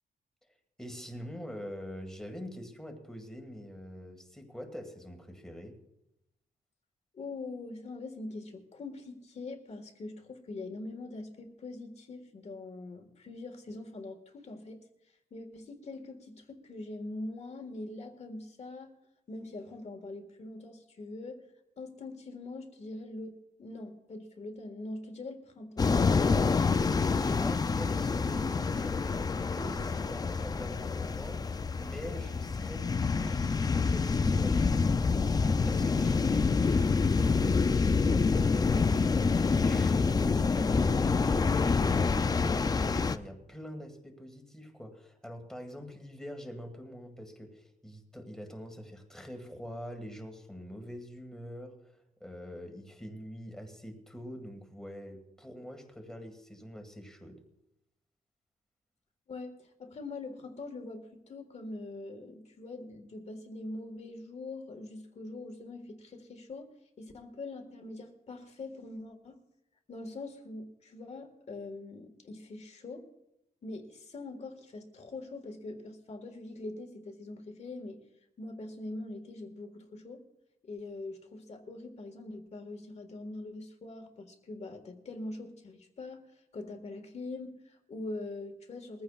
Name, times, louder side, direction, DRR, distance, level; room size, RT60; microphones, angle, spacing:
voice 1, 0.8-5.8 27.1-29.2 29.6-38.8 39.2-57.4, equal, 5° left, 4 dB, 1.8 m, -44 dB
voice 2, 7.1-14.8 15.3-18.9 19.3-21.4 21.8-26.3 59.3-69.4 69.9-73.1 73.6-78.0 78.4-80.2 80.6-89.0, left 2 dB, 40° left, 6 dB, 1.6 m, -43 dB
sound 1, 25.8-43.2, left 4 dB, 25° left, 0.4 m, -27 dB
21.5 x 15.0 x 2.4 m, 0.86 s
wide cardioid pair, 170°, 17 cm